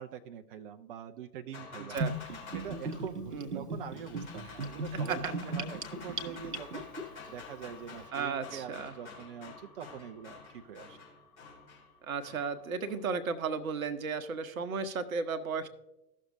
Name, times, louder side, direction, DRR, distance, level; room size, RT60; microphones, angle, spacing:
voice 1, 0.0-2.0 2.5-6.9 7.3-11.0, right 8 dB, 40° right, 7 dB, 0.5 m, -44 dB
sound 1, 1.5-13.1, left 4 dB, 65° left, 3.6 m, -49 dB
Gurgling / Bathtub (filling or washing), 2.0-7.0, right 2 dB, 90° right, 0.9 m, -36 dB
voice 2, 3.3-3.6 4.9-5.3 8.1-8.9 12.1-15.7, right 5 dB, 65° right, 11 dB, 0.9 m, -34 dB
15.5 x 6.3 x 2.6 m, 0.97 s
figure-of-eight pair, 95°, 45 cm